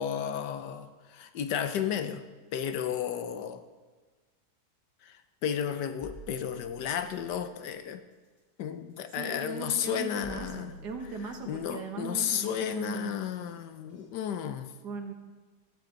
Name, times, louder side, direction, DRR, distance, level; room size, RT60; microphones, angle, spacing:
voice 1, 0.0-2.2 2.5-3.6 5.0-5.2 5.4-8.0 8.6-10.7 11.4-14.7, left 8 dB, 85° left, 10 dB, 1.5 m, -33 dB
sound 1, 6.0-7.3 9.1-9.3 10.2-11.5 13.4-13.5 14.0-14.1, right 1 dB, 45° left, 3.3 m, -48 dB
voice 2, 9.1-13.2 14.8-15.1, right 4 dB, 75° right, 5 dB, 2.0 m, -39 dB
17.0 x 13.5 x 4.0 m, 1.4 s
omnidirectional pair, 1.8 m